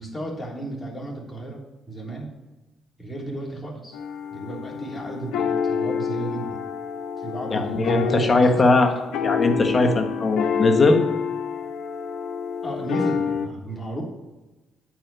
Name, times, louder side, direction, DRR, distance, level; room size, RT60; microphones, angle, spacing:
voice 1, 0.0-2.3 3.0-4.0 4.3-6.6 7.2-8.8 12.6-14.0, right 1 dB, 15° left, -3 dB, 3.3 m, -34 dB
sound 1, 3.9-13.5, left 6 dB, 90° left, 0.9 m, -28 dB
voice 2, 7.5-8.9 9.2-11.0, left 2 dB, 30° left, 4 dB, 1.4 m, -19 dB
8.9 x 4.7 x 6.9 m, 1.1 s
cardioid pair, 90°, 0 cm